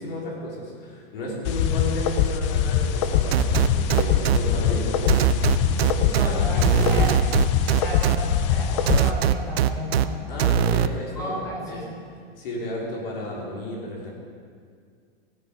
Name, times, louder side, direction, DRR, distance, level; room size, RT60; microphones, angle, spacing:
voice 1, 0.0-5.4 5.8-7.1 10.3-11.8 12.4-14.1, left 1 dB, 65° left, -3 dB, 3.9 m, -33 dB
sound 1, 1.5-9.1, left 8 dB, 30° left, 0.5 m, -23 dB
sound 2, 3.3-4.4 5.1-6.3 6.6-8.2 8.9-10.0 10.4-10.9, right 11 dB, 80° right, 0.7 m, -20 dB
voice 2, 6.1-7.1 7.8-10.6 11.0-12.0, equal, 10° left, -3 dB, 3.5 m, -33 dB
16.0 x 8.0 x 5.2 m, 2.2 s
supercardioid pair, 165°, 31 cm